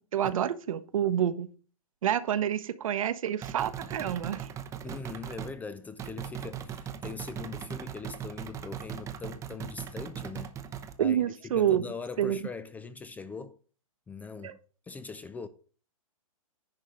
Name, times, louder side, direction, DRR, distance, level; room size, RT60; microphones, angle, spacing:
voice 1, 0.0-1.5 2.0-4.5 11.0-11.8 12.2-12.4 14.4-14.6, right 10 dB, 65° right, 0.9 m, -28 dB
sound 1, 3.4-5.6 6.0-11.0, right 9 dB, 15° right, 0.7 m, -39 dB
voice 2, 4.8-10.5 11.0-11.2 11.4-13.6 14.1-14.6 14.9-15.5, left 4 dB, 10° left, 0.4 m, -41 dB
10.5 x 3.7 x 6.9 m
hypercardioid pair, 130°, 18 cm